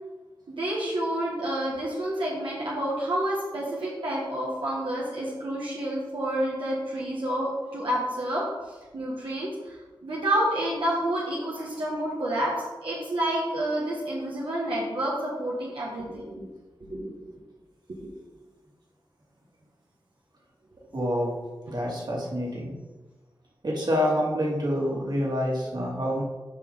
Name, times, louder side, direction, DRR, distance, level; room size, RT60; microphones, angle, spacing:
voice 1, 0.5-8.4 8.9-12.5 12.8-16.5 16.9-17.2 18.0-18.1, right 1 dB, 80° right, -6 dB, 1.6 m, -29 dB
voice 2, 20.9-21.3 21.7-22.8 23.6-26.2, equal, 55° right, -4 dB, 2.5 m, -27 dB
9.0 x 5.1 x 4.0 m, 1.3 s
cardioid pair, 45°, 9 cm